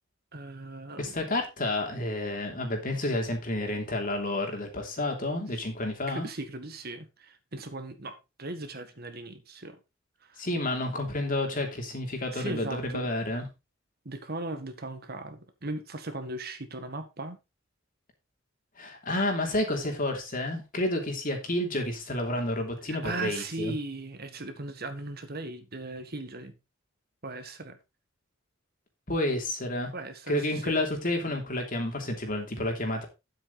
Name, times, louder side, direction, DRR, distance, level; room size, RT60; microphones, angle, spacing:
voice 1, 0.3-1.3 6.1-9.8 10.2-10.4 12.3-13.1 14.1-17.4 22.9-26.6 27.2-27.8 29.9-30.8, right 2 dB, 50° right, 1.7 m, -38 dB
voice 2, 1.0-6.3 10.4-13.5 18.8-23.7 29.1-29.9 30.3-33.1, left 1 dB, 45° left, 3.1 m, -30 dB
9.7 x 7.9 x 4.1 m
head